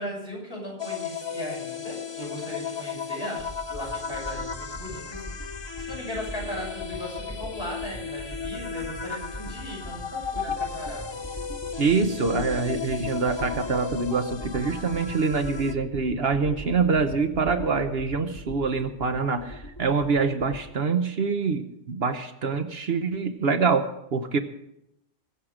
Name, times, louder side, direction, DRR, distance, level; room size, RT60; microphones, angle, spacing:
voice 1, 0.0-11.4, equal, 55° left, -3 dB, 6.9 m, -37 dB
sound 1, 0.8-15.7, left 6 dB, 35° left, 0.4 m, -35 dB
sound 2, 3.4-20.6, left 1 dB, 15° left, 1.9 m, -41 dB
voice 2, 11.8-24.4, right 4 dB, 55° right, 8 dB, 1.0 m, -25 dB
22.0 x 7.5 x 4.9 m, 0.81 s
omnidirectional pair, 1.2 m